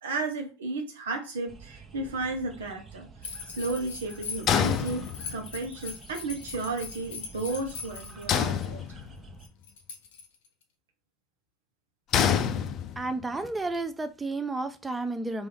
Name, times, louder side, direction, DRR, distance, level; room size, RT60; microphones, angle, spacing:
voice 1, 0.0-3.1 3.5-8.8, right 3 dB, 90° right, 0.8 m, -33 dB
sound 1, 1.5-9.5, right 5 dB, 30° right, 0.9 m, -49 dB
sound 2, 3.2-8.6 9.4-10.6, left 6 dB, 85° left, 0.7 m, -41 dB
sound 3, 4.5-5.6 8.3-9.3 12.1-13.2, left 8 dB, 50° left, 0.4 m, -27 dB
voice 2, 13.0-15.5, right 2 dB, 15° right, 0.5 m, -32 dB
3.4 x 2.5 x 3.4 m
hypercardioid pair, 85°, 0 cm